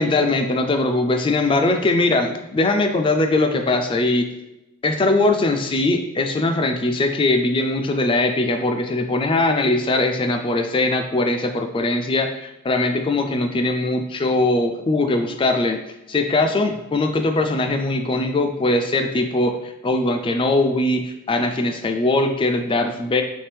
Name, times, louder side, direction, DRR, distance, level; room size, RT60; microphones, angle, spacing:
voice 1, 0.0-4.3 4.8-15.8 16.1-23.2, left 2 dB, 25° left, 6 dB, 0.3 m, -21 dB
4.5 x 3.3 x 3.3 m, 0.92 s
head